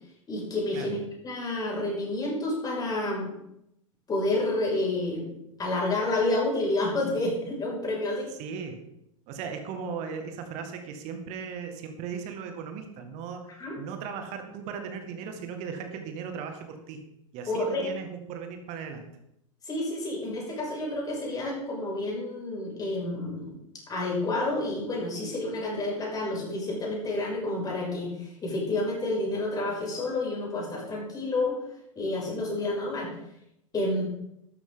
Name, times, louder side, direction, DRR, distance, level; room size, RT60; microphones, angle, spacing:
voice 1, 0.3-1.0 1.2-3.3 4.1-5.3 5.6-8.3 13.6-13.8 17.5-17.9 19.6-23.5 23.9-31.6 32.0-33.1 33.7-34.0, left 2 dB, 20° left, -3 dB, 6.0 m, -29 dB
voice 2, 8.4-8.8 9.3-13.5 13.8-17.0 17.3-19.0, right 6 dB, 40° right, 6 dB, 2.0 m, -37 dB
12.5 x 11.5 x 3.9 m, 0.79 s
figure-of-eight pair, 90°, 17 cm